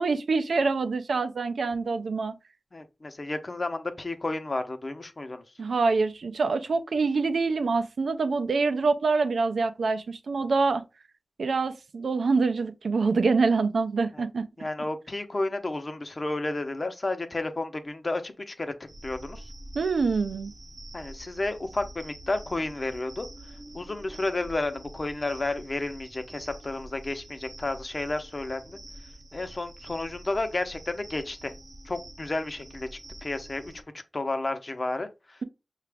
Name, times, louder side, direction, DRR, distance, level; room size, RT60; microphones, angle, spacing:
voice 1, 0.0-2.3 5.6-10.8 11.4-14.4 19.8-20.5, right 4 dB, 90° right, 0.4 m, -25 dB
voice 2, 2.7-5.4 14.1-14.3 14.6-18.7 19.0-19.4 20.9-23.3 23.7-28.8 29.3-31.5 31.8-32.9 33.2-35.4, left 2 dB, 45° left, 0.7 m, -32 dB
sound 1, 18.9-33.8, right 1 dB, 45° right, 0.7 m, -46 dB
5.7 x 2.4 x 3.4 m
cardioid pair, 50°, 0 cm